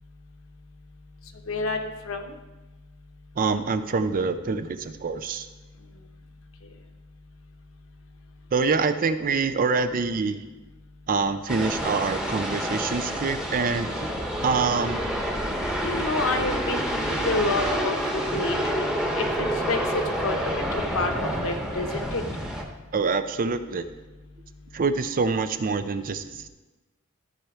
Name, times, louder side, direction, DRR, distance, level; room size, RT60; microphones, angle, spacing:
voice 1, 1.5-2.3 15.8-17.9 18.3-18.9 19.2-21.1 21.4-22.2, left 2 dB, 70° left, 5 dB, 1.0 m, -29 dB
voice 2, 3.4-5.5 8.5-10.4 11.1-14.1 14.4-15.0 22.9-23.9 24.7-26.5, right 4 dB, 40° right, 11 dB, 0.5 m, -25 dB
sound 1, 11.5-22.6, equal, 5° right, 1.0 m, -28 dB
13.5 x 4.5 x 4.9 m, 1.1 s
head